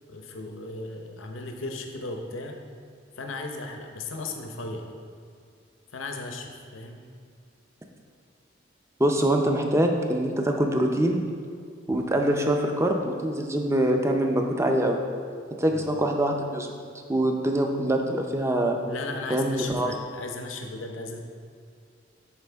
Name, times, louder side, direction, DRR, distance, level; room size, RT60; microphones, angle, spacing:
voice 1, 0.1-2.6 3.2-4.9 5.9-7.0 15.7-15.9 18.9-21.2, left 2 dB, 90° left, 3 dB, 0.7 m, -36 dB
voice 2, 9.0-11.2 11.9-15.0 15.6-16.7 17.1-18.8 19.3-19.9, right 1 dB, 15° right, 3 dB, 0.5 m, -24 dB
10.5 x 4.2 x 3.4 m, 2.2 s
head